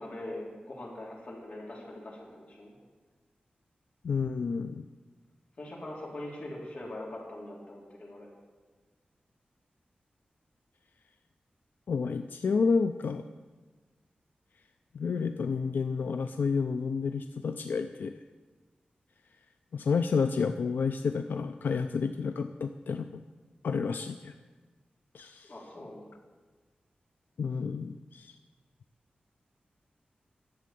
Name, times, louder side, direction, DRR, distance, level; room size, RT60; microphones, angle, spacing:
voice 1, 0.0-2.7 5.6-8.3 25.5-26.0, left 1 dB, 50° left, -4 dB, 4.2 m, -42 dB
voice 2, 4.0-4.8 11.9-13.2 14.9-18.2 19.7-23.1 23.6-24.3 25.1-25.5 27.4-28.3, left 5 dB, 85° left, 8 dB, 0.5 m, -30 dB
12.0 x 7.6 x 9.2 m, 1.4 s
wide cardioid pair, 120°, 3 cm